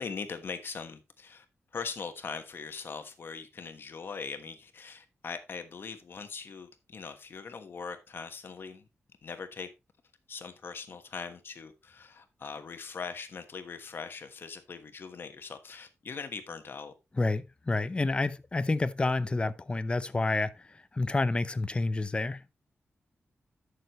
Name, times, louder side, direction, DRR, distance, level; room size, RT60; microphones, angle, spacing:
voice 1, 0.0-1.4 1.7-8.9 9.2-9.7 10.3-16.9, left 5 dB, 55° left, 1.3 m, -41 dB
voice 2, 17.2-20.5 20.9-22.4, left 3 dB, 25° left, 0.6 m, -29 dB
12.5 x 6.6 x 3.1 m
wide cardioid pair, 130°, 5 cm